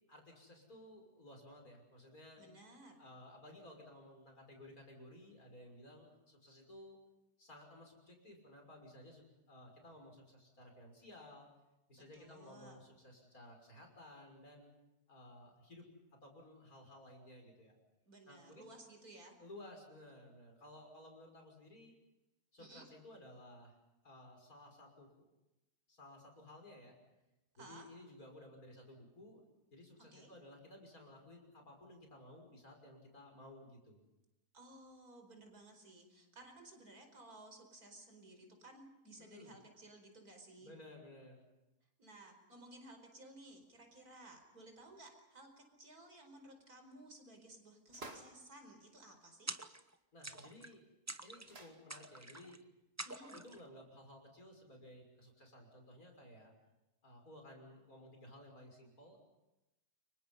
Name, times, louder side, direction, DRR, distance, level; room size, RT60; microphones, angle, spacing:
voice 1, 0.1-2.4 3.0-7.0 7.4-11.5 11.9-14.7 15.1-15.8 16.2-17.8 18.3-18.7 19.4-21.9 22.5-23.8 24.0-25.3 25.9-26.9 27.6-34.0 39.2-39.5 40.6-41.4 50.1-50.8 51.2-52.6 53.2-56.5 57.0-59.2, left 1 dB, 60° left, 3 dB, 6.6 m, -56 dB
voice 2, 2.4-3.0 12.1-12.8 18.1-19.4 22.6-22.8 27.5-27.9 30.1-30.3 34.5-40.7 42.0-49.6 53.1-53.4, right 2 dB, 65° right, 5 dB, 5.3 m, -57 dB
sound 1, 47.9-48.5 50.3-50.4 50.6-50.7 51.4-51.9, right 2 dB, 40° right, 2.7 m, -52 dB
sound 2, 49.5-49.9 50.2-50.7 51.1-51.5 51.9-52.6 53.0-53.6, right 2 dB, 15° right, 0.7 m, -47 dB
30.0 x 25.0 x 5.6 m, 0.97 s
omnidirectional pair, 1.7 m